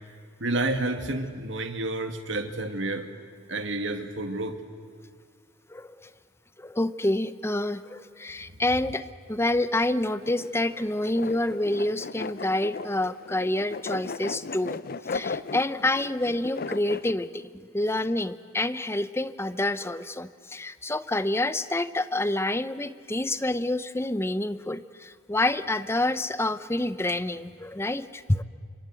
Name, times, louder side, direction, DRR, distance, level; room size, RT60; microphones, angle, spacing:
voice 1, 0.4-3.1 3.5-4.6, right 2 dB, 70° right, 7 dB, 2.2 m, -29 dB
voice 2, 5.7-6.1 6.6-14.8 15.1-28.4, left 1 dB, 15° left, 13 dB, 0.8 m, -28 dB
sound 1, 10.2-17.1, left 4 dB, 50° left, 0.6 m, -37 dB
29.5 x 26.0 x 7.8 m, 2.1 s
head